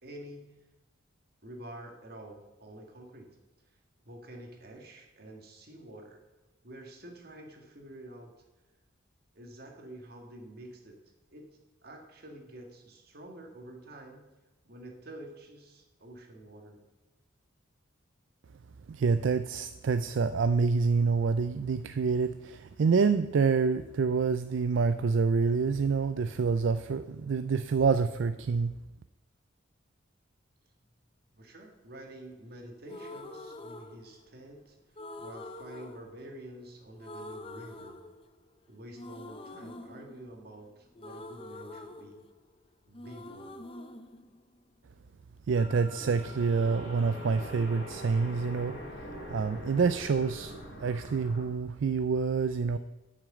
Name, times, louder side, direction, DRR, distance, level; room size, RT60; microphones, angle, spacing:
voice 1, 0.0-0.5 1.4-3.4 4.1-6.2 6.6-8.3 9.3-11.0 11.3-14.3 14.7-16.8 31.4-34.8 35.2-38.0 38.7-42.2 42.8-43.6, right 1 dB, 50° right, 2 dB, 1.8 m, -48 dB
voice 2, 18.9-28.7 45.5-48.8 49.3-52.8, right 5 dB, 70° right, 12 dB, 0.4 m, -27 dB
sound 1, 32.8-34.5 34.9-36.7 37.0-38.6 38.9-42.7 42.9-45.0, left 2 dB, 25° left, 0.6 m, -46 dB
sound 2, 45.6-51.5, equal, 60° left, 3.1 m, -43 dB
8.6 x 6.3 x 7.8 m, 1.1 s
head